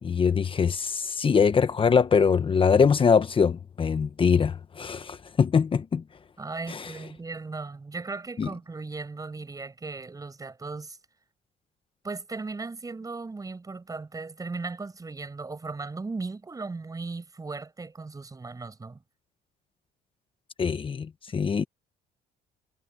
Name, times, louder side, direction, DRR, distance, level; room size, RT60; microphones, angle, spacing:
voice 1, 0.0-6.0 6.7-6.9 8.4-8.5 20.6-21.6, left 6 dB, 30° left, 1.1 m, -23 dB
voice 2, 6.4-11.0 12.0-19.0, right 3 dB, 20° right, 7.6 m, -37 dB
cardioid pair, 110°, 17 cm